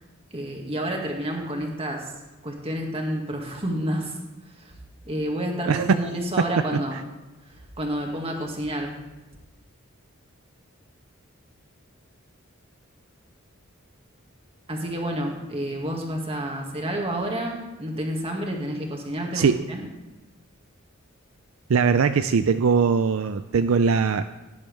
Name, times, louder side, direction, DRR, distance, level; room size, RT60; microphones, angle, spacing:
voice 1, 0.3-2.1 2.4-4.1 4.6-4.7 5.0-7.0 7.8-8.9 14.7-19.9, right 1 dB, 25° right, 0 dB, 2.1 m, -29 dB
voice 2, 5.7-6.0 6.6-7.0 19.3-19.6 21.7-24.3, right 5 dB, 70° right, 10 dB, 0.4 m, -21 dB
17.0 x 10.5 x 3.5 m, 1.1 s
head